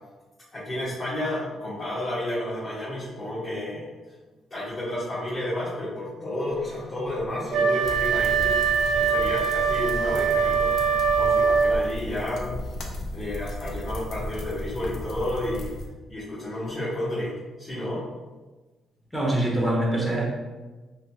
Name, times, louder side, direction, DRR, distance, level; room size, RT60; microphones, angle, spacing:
voice 1, 0.5-3.8 4.5-8.6 8.9-12.7 13.1-15.7 16.1-18.0, left 1 dB, 35° left, -11 dB, 1.1 m, -31 dB
Wind instrument woodwind instrument, 7.5-11.9, right 6 dB, 65° right, 0.3 m, -22 dB
sound 1, 7.8-15.9, left 1 dB, 70° left, 0.4 m, -35 dB
voice 2, 19.1-20.2, right 1 dB, 5° left, -3 dB, 0.6 m, -24 dB
2.9 x 2.2 x 2.7 m, 1.2 s
cardioid pair, 90°, 0 cm